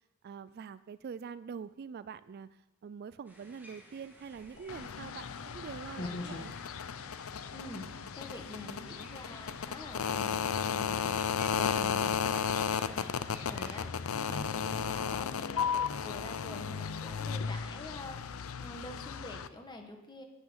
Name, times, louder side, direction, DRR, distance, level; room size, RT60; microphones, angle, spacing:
voice 1, 0.2-6.5, right 6 dB, 50° right, 16 dB, 0.3 m, -45 dB
sound 1, 3.2-13.8, equal, 10° right, 2.2 m, -55 dB
sound 2, 4.2-18.7, left 2 dB, 55° left, 1.8 m, -52 dB
sound 3, 4.7-19.5, left 7 dB, 80° left, 0.5 m, -34 dB
voice 2, 7.5-7.8 8.1-11.2 11.5-13.1 13.4-13.9 14.1-18.3 18.6-20.2, left 1 dB, 20° left, 3 dB, 1.6 m, -46 dB
9.3 x 8.2 x 7.2 m, 1.0 s
head